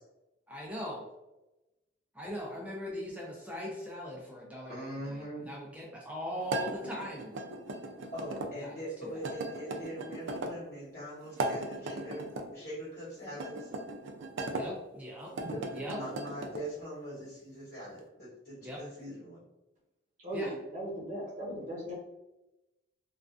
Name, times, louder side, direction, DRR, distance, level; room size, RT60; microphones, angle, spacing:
voice 1, 0.5-1.1 2.1-7.4 8.5-8.7 9.0-9.2 14.5-15.4 15.7-16.0 18.6-18.8 20.3-20.6, equal, 5° right, -4 dB, 0.4 m, -40 dB
voice 2, 4.7-5.5 8.1-12.2 12.5-13.7 15.4-19.4, equal, 50° left, -12 dB, 1.0 m, -42 dB
sound 1, 6.5-8.5 9.2-10.5 11.3-12.5 13.3-14.6 15.2-16.6, right 2 dB, 75° right, 0.4 m, -37 dB
voice 3, 20.2-21.9, right 1 dB, 40° right, -6 dB, 0.9 m, -37 dB
2.4 x 2.3 x 2.3 m, 0.99 s
head